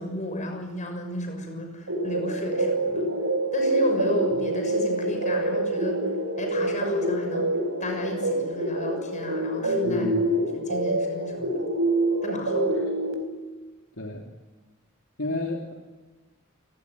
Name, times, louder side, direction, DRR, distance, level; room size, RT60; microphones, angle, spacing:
voice 1, 0.0-3.1 3.5-6.0 6.4-7.5 7.8-10.1 10.5-11.6 12.2-12.8 15.3-15.4, left 1 dB, 35° left, 5 dB, 6.5 m, -34 dB
sound 1, 1.9-13.1, right 1 dB, 85° right, 4.2 m, -26 dB
voice 2, 9.8-10.4 14.0-14.3 15.2-15.7, left 2 dB, 70° left, 1 dB, 3.2 m, -32 dB
29.0 x 18.5 x 9.8 m, 1.3 s
head